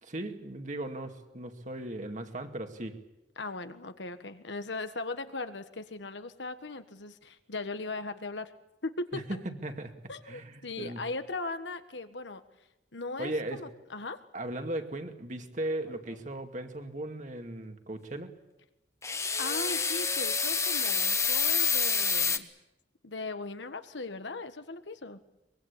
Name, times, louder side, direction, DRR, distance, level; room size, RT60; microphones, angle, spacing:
voice 1, 0.0-3.0 9.1-9.9 10.3-11.0 13.2-13.7 14.3-18.3, right 1 dB, 45° right, 5 dB, 2.4 m, -37 dB
voice 2, 3.4-8.5 8.8-9.4 10.1-12.4 12.9-14.2 19.4-22.5 23.0-25.2, left 3 dB, 85° left, 10 dB, 1.6 m, -38 dB
sound 1, 19.0-22.4, left 6 dB, 15° left, 1.0 m, -28 dB
23.5 x 22.0 x 8.7 m, 0.93 s
head